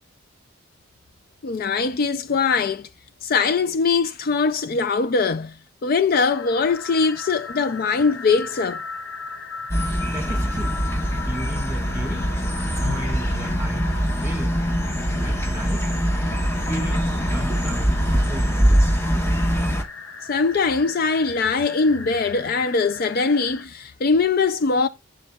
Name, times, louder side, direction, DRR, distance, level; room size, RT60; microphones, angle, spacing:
voice 1, 1.4-2.9 3.2-5.5 5.8-8.8 12.1-12.3 12.8-12.9 20.3-24.9, left 4 dB, 50° left, 0.4 m, -21 dB
sound 1, 6.1-23.6, left 4 dB, 75° left, 0.8 m, -38 dB
sound 2, 9.7-19.8, equal, 15° left, 1.0 m, -23 dB
voice 2, 10.1-10.8 11.1-12.3 12.7-14.6 15.2-15.9 16.6-18.6, right 1 dB, 15° right, 1.8 m, -35 dB
7.1 x 7.1 x 2.3 m
head